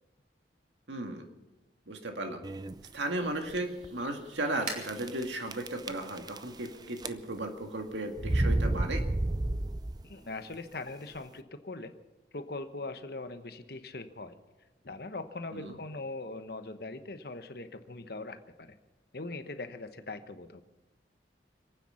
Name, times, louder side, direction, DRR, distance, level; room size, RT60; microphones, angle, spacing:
voice 1, 0.9-1.3 1.9-2.4 2.9-9.0 15.5-15.7, right 1 dB, 85° right, 4 dB, 2.0 m, -35 dB
sound 1, 2.4-2.9 3.5-3.6 3.8-3.9 4.8-5.2 5.5-6.7 7.0-7.5 8.2-10.1, right 1 dB, 20° right, 0.5 m, -30 dB
sound 2, 2.7-7.9, right 3 dB, 40° right, 3.0 m, -48 dB
voice 2, 10.0-11.9 12.3-14.4 14.8-18.8 19.1-20.6, left 2 dB, 55° left, 9 dB, 1.1 m, -41 dB
26.5 x 9.3 x 5.7 m, 1.0 s
head